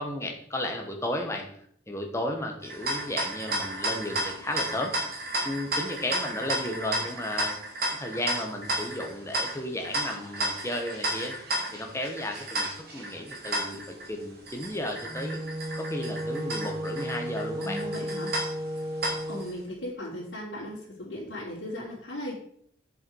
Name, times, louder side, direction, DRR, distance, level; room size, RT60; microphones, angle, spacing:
voice 1, 0.0-1.5 1.9-4.9 5.4-7.6 7.9-11.3 11.7-15.4 15.7-17.9, left 1 dB, 15° left, 2 dB, 1.4 m, -34 dB
sound 1, 2.6-19.5, right 1 dB, 50° right, 2.8 m, -33 dB
Wind instrument woodwind instrument, 15.0-19.5, equal, 15° right, 0.7 m, -34 dB
voice 2, 17.6-18.3 19.3-22.3, left 1 dB, 70° left, -8 dB, 3.3 m, -37 dB
8.1 x 7.0 x 4.7 m, 0.66 s
head